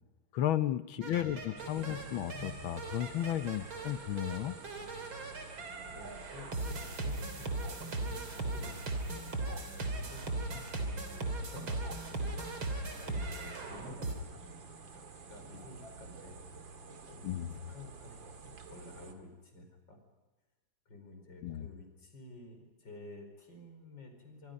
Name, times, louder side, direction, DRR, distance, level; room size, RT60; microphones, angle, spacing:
voice 1, 0.3-4.6 17.2-17.5 21.4-21.7, left 11 dB, 85° left, 13 dB, 1.7 m, -34 dB
voice 2, 0.9-2.2 4.7-8.8 9.8-12.6 13.1-20.0 20.9-24.5, left 2 dB, 65° left, 5 dB, 5.3 m, -52 dB
sound 1, 1.0-14.1, right 2 dB, 90° right, 3.9 m, -39 dB
sound 2, 1.6-19.1, right 4 dB, 70° right, 2.7 m, -50 dB
25.0 x 25.0 x 5.3 m, 1.2 s
omnidirectional pair, 2.2 m